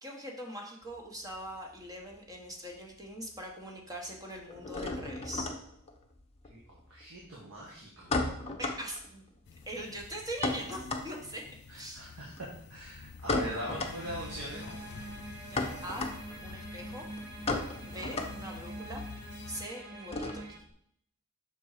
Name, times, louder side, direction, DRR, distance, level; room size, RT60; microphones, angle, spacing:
voice 1, 0.0-5.5 8.6-9.4 9.7-11.4 11.7-12.0 15.5-16.1 16.4-17.1 17.9-19.0 19.5-20.6, right 1 dB, 15° right, 1 dB, 1.1 m, -42 dB
sound 1, 0.8-2.5 2.7-3.4 3.7-20.7, left 2 dB, 30° left, 0.7 m, -37 dB
voice 2, 6.9-8.3 11.7-12.3 12.7-14.8, right 1 dB, 85° right, -4 dB, 1.6 m, -41 dB
sound 2, 9.5-19.7, left 5 dB, 55° left, 0.4 m, -49 dB
sound 3, 13.5-20.6, right 1 dB, 50° right, 1.3 m, -45 dB
6.1 x 4.3 x 4.8 m, 0.67 s
head